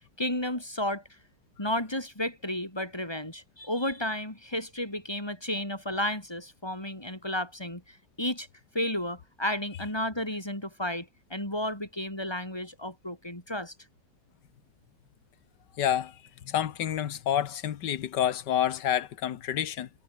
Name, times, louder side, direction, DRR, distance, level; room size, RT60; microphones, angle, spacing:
voice 1, 0.2-1.0 1.6-8.5 8.7-13.7, left 1 dB, 15° left, 3.8 m, -32 dB
voice 2, 15.8-16.1 16.4-19.9, left 10 dB, 80° left, 1.7 m, -28 dB
omnidirectional pair, 1.9 m